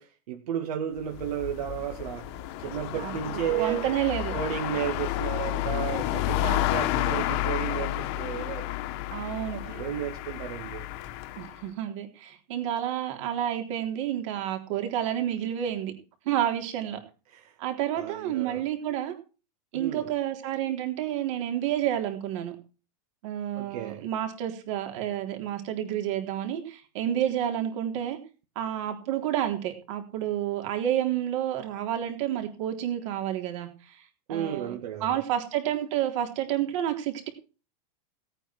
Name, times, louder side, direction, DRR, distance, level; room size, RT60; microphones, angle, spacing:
voice 1, 0.0-2.3 2.6-3.9 4.3-8.7 9.6-10.9 17.3-17.5 17.9-18.6 19.7-20.1 23.6-24.0 34.3-35.1, right 10 dB, 70° right, 2.3 m, -33 dB
sound 1, 1.0-11.6, left 15 dB, 40° left, 1.2 m, -31 dB
voice 2, 3.6-4.4 9.1-9.6 11.4-15.9 16.3-17.0 17.6-19.2 19.7-22.5 23.2-28.2 28.6-34.0 34.3-37.3, right 11 dB, 50° right, 3.7 m, -30 dB
18.0 x 9.0 x 4.6 m
supercardioid pair, 165°, 20 cm